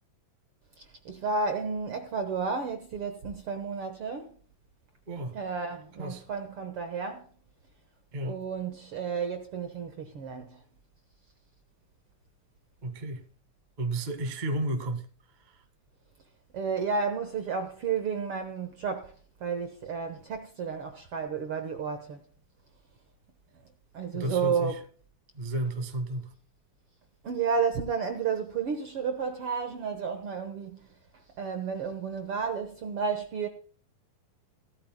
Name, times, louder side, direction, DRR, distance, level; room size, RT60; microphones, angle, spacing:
voice 1, 0.8-4.4 5.3-7.3 8.2-10.6 16.5-22.2 23.9-24.8 27.2-30.9 31.1-33.5, right 5 dB, 60° right, 1.6 m, -32 dB
voice 2, 5.1-5.4 6.0-6.2 8.1-8.4 12.8-13.2 13.8-15.1 15.4-15.6 24.1-24.7 25.3-26.3, right 1 dB, 25° right, 0.9 m, -32 dB
17.0 x 13.5 x 2.2 m
omnidirectional pair, 4.0 m